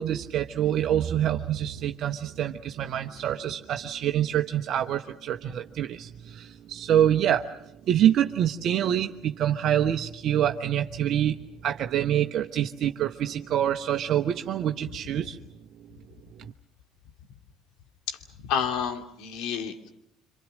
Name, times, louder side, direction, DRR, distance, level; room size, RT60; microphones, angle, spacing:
voice 1, 0.0-7.5 7.9-11.4 11.6-15.4 16.4-16.5, right 10 dB, 55° right, 5 dB, 1.0 m, -26 dB
voice 2, 18.1-19.9, left 7 dB, 65° left, 5 dB, 2.7 m, -30 dB
27.5 x 26.0 x 6.4 m, 0.80 s
hypercardioid pair, 65°, 0 cm